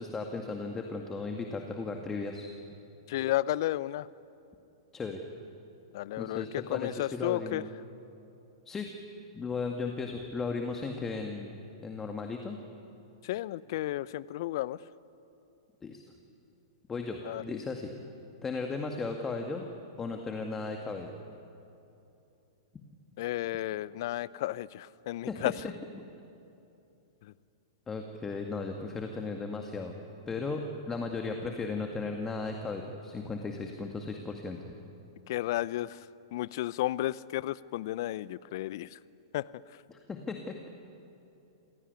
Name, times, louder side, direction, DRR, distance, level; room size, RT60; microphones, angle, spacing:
voice 1, 0.0-2.5 4.9-5.2 6.2-7.7 8.7-8.9 9.3-12.6 15.8-16.0 16.9-17.9 18.4-19.7 20.0-21.1 25.3-25.5 25.9-26.0 27.9-29.9 30.3-34.6 39.9-40.7, left 4 dB, 15° left, 3 dB, 2.0 m, -36 dB
voice 2, 3.1-4.1 5.9-7.6 13.2-14.8 17.2-17.4 23.2-25.5 27.2-27.3 35.3-36.0 36.3-39.0 39.3-39.5, left 15 dB, 55° left, 20 dB, 0.6 m, -33 dB
27.5 x 17.0 x 9.6 m, 2.8 s
figure-of-eight pair, 105°, 2 cm